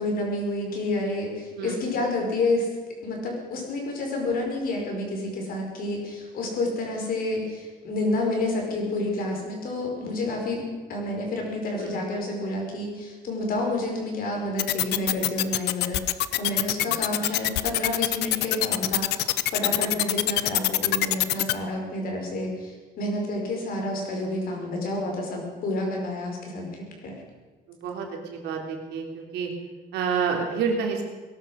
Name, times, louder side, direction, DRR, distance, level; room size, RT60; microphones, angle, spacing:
voice 1, 0.0-2.7 3.0-27.1, left 2 dB, 60° left, 0 dB, 5.2 m, -29 dB
sound 1, 14.6-21.5, left 16 dB, 80° left, 0.7 m, -23 dB
voice 2, 16.8-17.2 19.7-19.9 27.7-29.5 29.9-31.0, right 6 dB, 85° right, 2 dB, 3.1 m, -29 dB
18.0 x 12.0 x 6.4 m, 1.3 s
cardioid pair, 110°, 17 cm